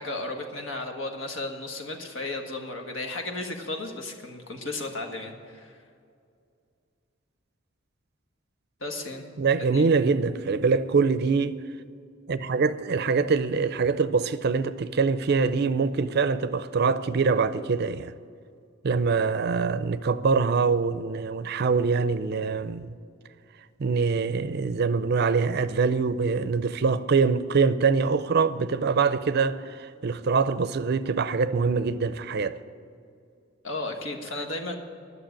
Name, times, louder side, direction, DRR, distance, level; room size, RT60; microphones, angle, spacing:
voice 1, 0.0-5.8 8.8-9.2 9.7-9.9 33.6-34.8, left 2 dB, 70° left, 1.5 m, -34 dB
voice 2, 9.4-11.6 12.3-18.1 18.8-22.9 23.8-32.6, right 5 dB, 55° right, 0.5 m, -24 dB
11.5 x 6.7 x 8.9 m
head